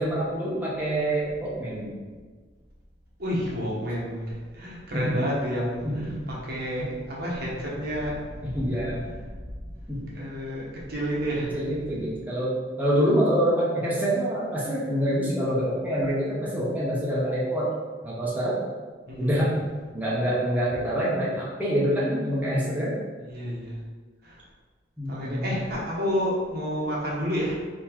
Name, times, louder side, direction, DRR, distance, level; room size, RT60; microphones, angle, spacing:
voice 1, 0.0-1.9 4.9-5.3 5.8-6.2 6.8-6.9 8.5-9.0 9.9-10.2 11.5-17.7 18.0-18.6 19.2-19.5 19.9-22.9 25.0-25.5, equal, 10° right, -8 dB, 0.9 m, -26 dB
voice 2, 3.2-8.6 9.2-9.3 9.6-9.7 10.1-11.5 19.1-19.3 23.3-23.7 24.2-24.4 25.1-27.5, equal, 55° right, -4 dB, 1.1 m, -30 dB
3.8 x 3.0 x 4.5 m, 1.4 s
head